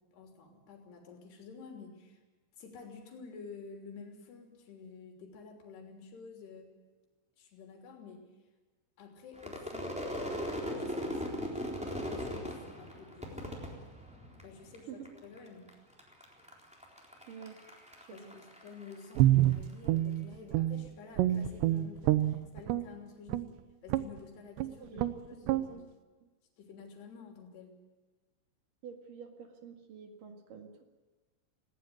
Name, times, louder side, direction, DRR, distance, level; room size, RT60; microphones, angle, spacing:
voice 1, 0.0-2.2 2.6-6.7 7.4-8.3 9.0-10.0 10.8-13.5 14.4-15.7 18.1-23.5 23.8-25.7 26.6-27.8, left 5 dB, 55° left, 3 dB, 5.0 m, -50 dB
Crowd / Fireworks, 9.4-14.7 15.0-15.7 16.0-19.5, equal, ahead, 2.6 m, -39 dB
voice 2, 17.3-17.6 18.0-18.4 24.7-25.8 28.8-30.8, right 7 dB, 55° right, 5 dB, 2.7 m, -49 dB
Guitar, 19.2-20.9 21.2-22.9 23.3-23.5 23.9-24.2 24.6-24.7 25.0-25.2 25.5-25.7, right 14 dB, 80° right, 2.7 m, -27 dB
18.5 x 17.5 x 9.3 m, 1.3 s
omnidirectional pair, 5.9 m